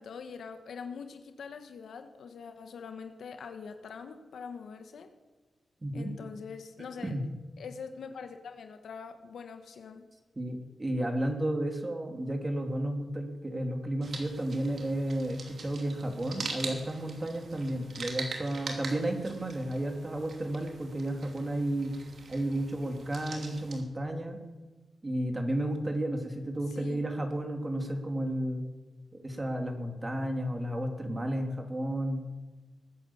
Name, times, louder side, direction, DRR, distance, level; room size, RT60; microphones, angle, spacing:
voice 1, 0.0-5.1 5.9-7.2 7.6-10.1 26.7-27.0, left 6 dB, 80° left, 7 dB, 1.4 m, -43 dB
voice 2, 5.8-6.1 7.0-7.2 10.4-21.9 22.3-24.4 25.0-28.6 29.1-32.3, right 1 dB, 30° right, 4 dB, 3.2 m, -32 dB
sound 1, 14.0-23.8, right 4 dB, 70° right, 2.7 m, -43 dB
20.0 x 9.6 x 7.3 m, 1.3 s
cardioid pair, 55°, 0 cm